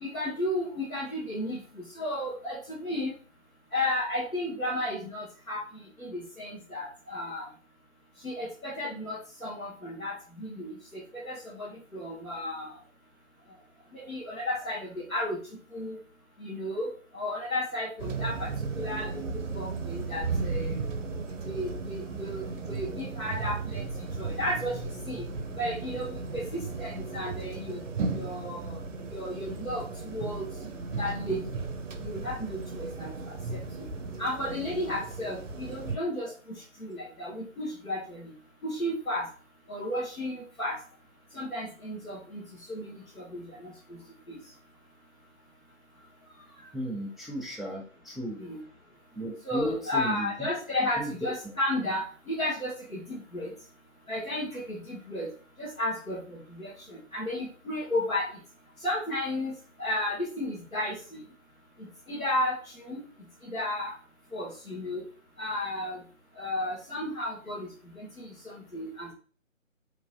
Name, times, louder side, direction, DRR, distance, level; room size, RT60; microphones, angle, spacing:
voice 1, 0.0-1.6 1.9-3.1 3.7-5.7 6.0-7.4 8.2-12.7 13.9-15.4 15.7-16.0 16.4-16.9 17.1-18.5 18.8-20.8 21.4-24.7 25.1-25.2 25.6-27.8 28.1-28.8 29.1-30.5 31.0-31.4 32.0-33.6 34.2-36.3 36.8-38.3 38.6-39.3 39.7-40.8 41.3-42.4 42.7-43.7 44.3-44.4 48.4-48.6 49.4-53.5 54.1-55.3 55.6-58.3 58.8-59.5 59.8-61.2 61.8-63.0 63.4-63.9 64.3-65.0 65.4-66.0 66.4-67.7 67.9-69.1, left 1 dB, 90° left, -5 dB, 1.3 m, -33 dB
sound 1, 18.0-36.0, right 4 dB, 65° right, 0.5 m, -35 dB
voice 2, 46.7-48.4 49.1-50.5 51.0-51.1, right 1 dB, ahead, -3 dB, 0.3 m, -35 dB
3.0 x 2.4 x 2.5 m, 0.40 s
figure-of-eight pair, 155°, 40 cm